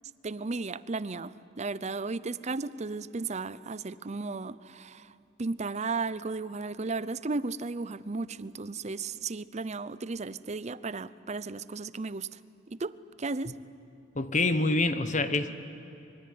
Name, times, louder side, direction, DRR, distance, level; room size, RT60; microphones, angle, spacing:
voice 1, 0.2-5.1 5.4-12.3 12.7-13.5, right 3 dB, 35° right, 17 dB, 0.6 m, -35 dB
voice 2, 14.1-15.5, left 2 dB, 40° left, 11 dB, 1.1 m, -26 dB
25.0 x 23.0 x 9.6 m, 2.9 s
head